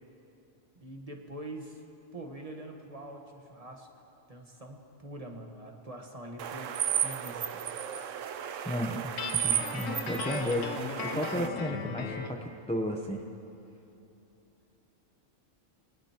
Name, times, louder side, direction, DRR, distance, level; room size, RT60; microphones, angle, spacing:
voice 1, 0.7-1.8 2.1-3.9 4.3-7.7, right 1 dB, 30° right, 2 dB, 1.4 m, -44 dB
sound 1, 6.4-11.5, right 10 dB, 85° right, 1.1 m, -33 dB
voice 2, 8.6-9.1 9.4-12.4 12.7-13.2, left 1 dB, 5° left, 2 dB, 0.6 m, -33 dB
Guitar, 9.2-12.4, left 6 dB, 80° left, 1.2 m, -37 dB
24.5 x 19.5 x 2.9 m, 2.9 s
omnidirectional pair, 1.3 m